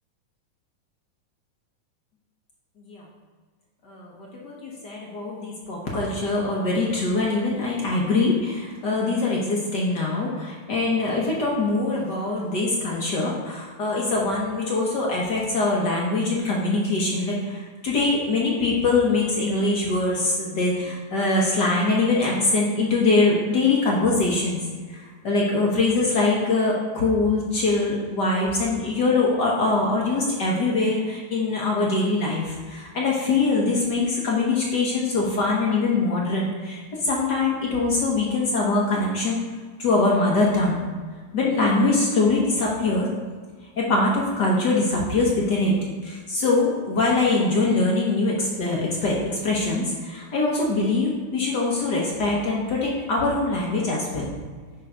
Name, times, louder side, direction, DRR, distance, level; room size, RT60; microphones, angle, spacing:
voice 1, 3.8-24.6 24.9-39.4 39.8-40.8 41.3-43.1 43.8-45.7 46.0-54.3, left 3 dB, 55° left, -3 dB, 1.2 m, -23 dB
10.5 x 3.9 x 5.0 m, 1.5 s
omnidirectional pair, 3.4 m